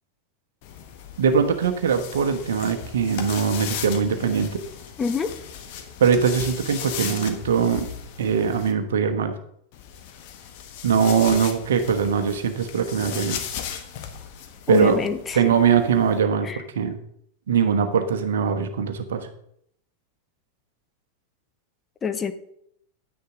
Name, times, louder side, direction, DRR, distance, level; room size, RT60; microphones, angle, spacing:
sound 1, 0.6-8.7 9.7-16.2, left 8 dB, 45° left, 1.4 m, -37 dB
voice 1, 1.2-4.6 6.0-7.9 8.2-9.4 10.8-13.4 14.7-15.0 15.3-16.5 16.7-17.0 17.5-19.3, right 6 dB, 60° right, 7 dB, 1.2 m, -21 dB
voice 2, 5.0-5.3 14.7-15.4 16.4-16.6 22.0-22.3, left 5 dB, 20° left, 10 dB, 0.8 m, -26 dB
10.0 x 9.7 x 3.8 m, 0.71 s
figure-of-eight pair, 90°, 0 cm